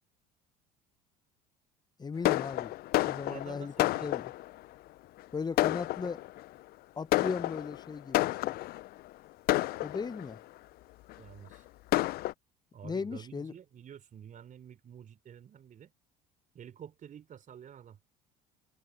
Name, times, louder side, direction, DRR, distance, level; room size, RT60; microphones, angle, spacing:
voice 1, 2.0-2.7 3.0-4.3 5.3-6.2 7.0-8.6 9.8-10.4 12.8-13.5, left 5 dB, 20° left, 0.8 m, -37 dB
Fireworks, 2.2-4.6 5.2-5.3 5.6-6.4 7.1-8.9 9.5-10.4 11.1-11.2 11.5-11.6 11.9-12.3, left 17 dB, 55° left, 0.6 m, -30 dB
voice 2, 3.3-4.2 11.2-11.6 12.7-15.9 16.5-18.0, right 9 dB, 45° right, 4.1 m, -49 dB
hypercardioid pair, 65°, 19 cm